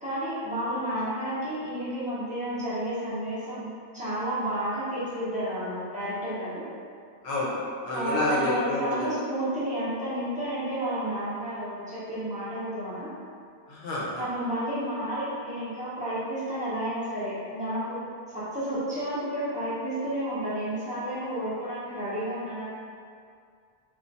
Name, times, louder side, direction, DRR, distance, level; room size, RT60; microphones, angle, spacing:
voice 1, 0.0-3.7 3.9-6.6 7.9-13.1 14.2-18.0 18.3-22.7, right 1 dB, 10° right, -13 dB, 0.6 m, -31 dB
voice 2, 7.2-7.6 7.8-9.1 13.7-14.2, left 1 dB, 75° left, -6 dB, 0.8 m, -28 dB
2.3 x 2.1 x 2.6 m, 2.2 s
omnidirectional pair, 1.1 m